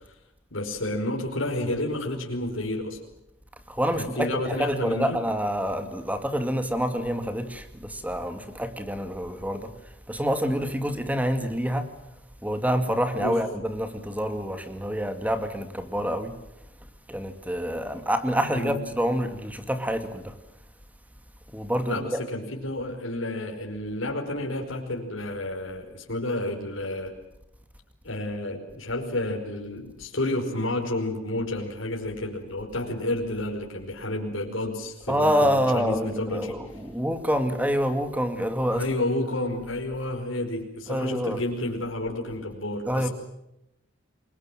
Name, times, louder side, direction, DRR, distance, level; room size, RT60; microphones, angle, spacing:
voice 1, 0.5-3.0 4.0-5.2 13.2-13.4 18.5-18.8 21.9-27.1 28.0-36.5 38.7-43.1, left 1 dB, 80° left, 5.1 m, -30 dB
voice 2, 3.7-11.9 12.4-16.4 17.1-20.4 21.5-22.2 35.1-38.8 40.9-41.4 42.9-43.1, equal, 10° right, 2.3 m, -27 dB
28.5 x 22.0 x 7.7 m
head